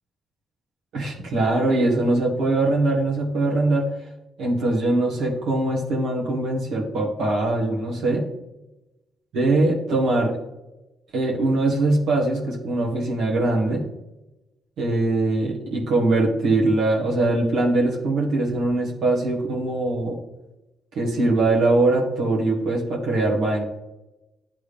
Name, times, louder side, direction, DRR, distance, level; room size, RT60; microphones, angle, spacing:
voice 1, 0.9-3.9 4.4-8.2 9.3-10.4 11.1-13.8 14.8-20.2 20.9-23.6, right 2 dB, 75° right, -3 dB, 1.6 m, -22 dB
10.5 x 3.5 x 3.4 m, 1.0 s
cardioid pair, 90°, 0 cm